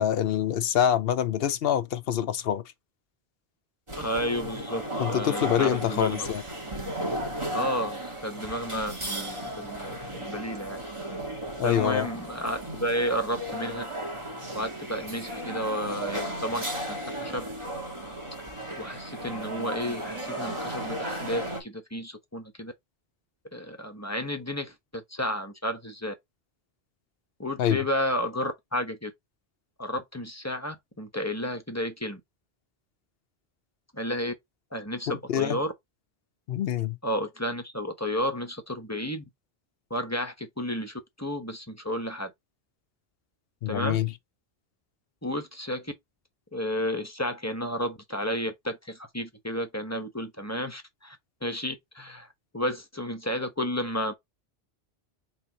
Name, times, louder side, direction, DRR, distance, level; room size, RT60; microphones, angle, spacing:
voice 1, 0.0-2.6 5.0-6.4 11.6-12.1 27.6-27.9 35.3-35.6 36.5-37.0 43.6-44.1, left 10 dB, 75° left, 0.8 m, -25 dB
sound 1, 3.9-21.6, right 1 dB, 30° right, 1.6 m, -35 dB
voice 2, 4.0-4.8 5.1-6.3 7.5-10.8 11.6-13.8 14.5-17.5 18.8-22.7 23.5-26.1 27.4-29.1 29.8-32.2 33.9-34.3 34.7-35.7 37.0-39.2 39.9-42.3 43.7-44.0 45.2-45.9 46.5-52.3 52.5-54.1, equal, 15° left, 0.9 m, -32 dB
4.1 x 3.9 x 2.8 m
omnidirectional pair, 1.0 m